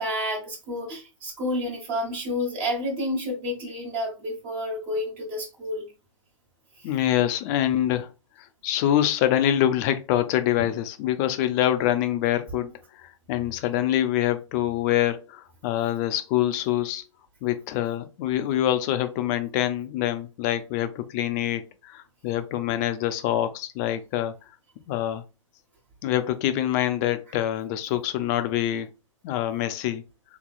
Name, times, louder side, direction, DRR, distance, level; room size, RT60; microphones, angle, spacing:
voice 1, 0.0-5.9 6.8-6.9, left 1 dB, 30° right, 1.2 m, -30 dB
voice 2, 6.8-8.1 8.6-12.7 13.0-17.0 17.4-24.3 24.9-25.2 26.0-28.9 29.2-30.0, left 12 dB, 35° left, 0.5 m, -25 dB
3.6 x 3.1 x 2.4 m
hypercardioid pair, 125°, 17 cm